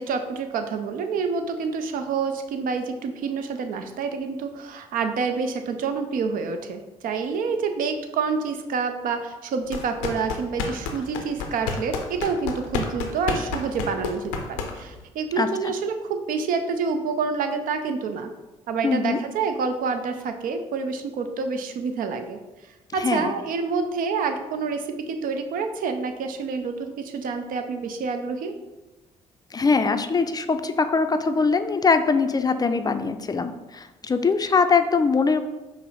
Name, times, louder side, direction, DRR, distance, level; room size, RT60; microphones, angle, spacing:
voice 1, 0.0-18.3 18.7-22.4 22.9-28.5, right 5 dB, 60° right, 7 dB, 0.5 m, -28 dB
sound 1, 9.7-15.0, left 5 dB, 90° left, 0.5 m, -30 dB
voice 2, 15.4-15.7 18.8-19.2 23.0-23.3 29.5-35.4, left 4 dB, 25° left, 9 dB, 0.4 m, -22 dB
5.3 x 2.0 x 4.1 m, 1.1 s
hypercardioid pair, 50°, 16 cm